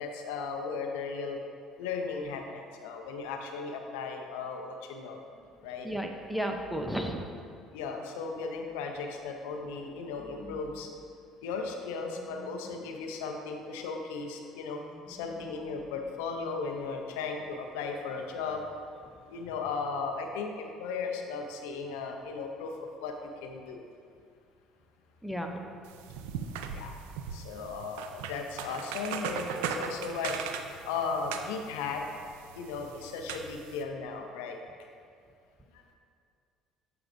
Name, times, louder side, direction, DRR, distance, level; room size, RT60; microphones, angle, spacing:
voice 1, 0.0-1.4 1.8-5.2 5.6-5.9 7.7-10.9 11.4-14.8 15.1-18.7 19.3-23.1 23.4-23.8 26.7-26.9 27.3-30.4 30.7-32.1 32.5-34.6, left 4 dB, 85° left, 3 dB, 0.6 m, -36 dB
sound 1, 5.3-16.3, left 1 dB, 20° left, 1.4 m, -54 dB
voice 2, 5.8-7.2 25.2-25.6, equal, ahead, 3 dB, 0.7 m, -33 dB
sound 2, 25.8-33.8, right 6 dB, 85° right, 0.3 m, -39 dB
7.8 x 5.8 x 2.6 m, 2.3 s
supercardioid pair, 75°, 0 cm